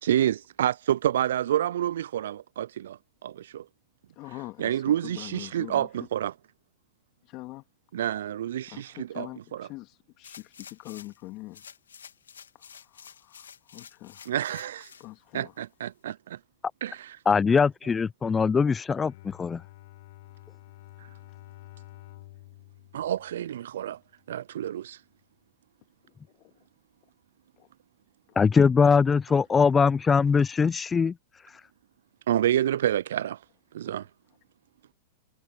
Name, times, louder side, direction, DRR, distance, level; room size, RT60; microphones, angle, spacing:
voice 1, 0.0-3.7 4.6-6.3 7.9-9.7 14.3-14.9 15.3-16.4 16.8-17.2 22.9-24.0 24.3-25.0 32.3-33.4 33.7-34.1, right 11 dB, 75° right, 0.3 m, -28 dB
voice 2, 4.2-5.9 7.2-7.6 8.7-11.6 12.6-14.3 15.0-15.5 26.4-26.5 27.6-27.7 28.3-28.4 30.4-30.5, left 20 dB, 45° left, 2.3 m, -44 dB
sound 1, 10.2-11.2 11.5-15.1 15.6-15.7, left 7 dB, 85° left, 2.2 m, -49 dB
voice 3, 17.3-19.6 28.4-31.1, left 5 dB, 20° left, 0.5 m, -22 dB
Bowed string instrument, 18.8-24.1, left 18 dB, 60° left, 6.6 m, -50 dB
hypercardioid pair, 105°, 0 cm